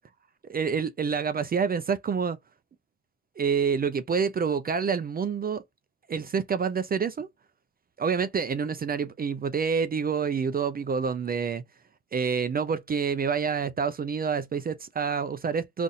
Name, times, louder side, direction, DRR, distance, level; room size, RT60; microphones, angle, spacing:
voice 1, 0.4-2.4 3.4-5.6 6.1-7.3 8.0-11.6 12.1-15.8, right 6 dB, 30° right, 0.4 m, -27 dB
4.0 x 2.5 x 2.5 m
cardioid pair, 90°, 30 cm